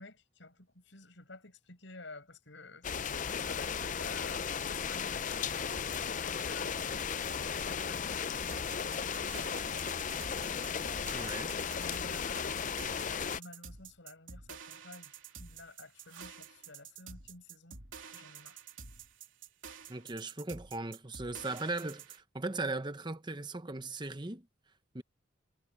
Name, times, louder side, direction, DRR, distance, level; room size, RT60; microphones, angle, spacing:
voice 1, 0.0-2.9 3.4-5.7 6.2-10.0 11.7-12.8 13.3-17.8 18.1-18.6, left 2 dB, 65° left, 6.1 m, -52 dB
sound 1, 2.8-13.4, left 7 dB, 40° left, 0.5 m, -35 dB
sound 2, 8.5-22.2, right 6 dB, 75° right, 3.5 m, -50 dB
voice 2, 11.1-11.5 19.9-24.5 24.9-25.0, right 2 dB, 20° right, 1.0 m, -38 dB
head